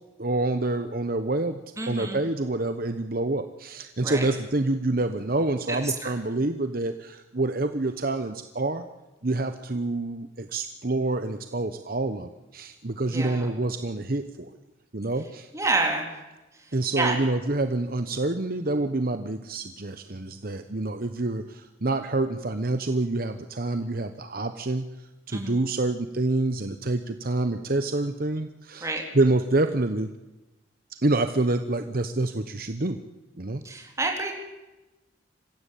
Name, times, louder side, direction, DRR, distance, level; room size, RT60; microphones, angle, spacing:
voice 1, 0.2-1.6 1.9-8.8 9.2-14.5 14.9-15.5 16.7-24.9 25.3-28.9 29.1-30.1 30.9-33.0 33.4-33.6, right 2 dB, 50° right, 8 dB, 1.0 m, -27 dB
voice 2, 1.8-2.2 4.0-4.3 5.7-6.1 13.1-13.5 15.5-16.1 17.0-17.1 25.3-25.5 28.8-29.0 33.6-34.3, right 3 dB, 15° right, 1 dB, 3.8 m, -28 dB
26.5 x 16.0 x 8.4 m, 1.1 s
head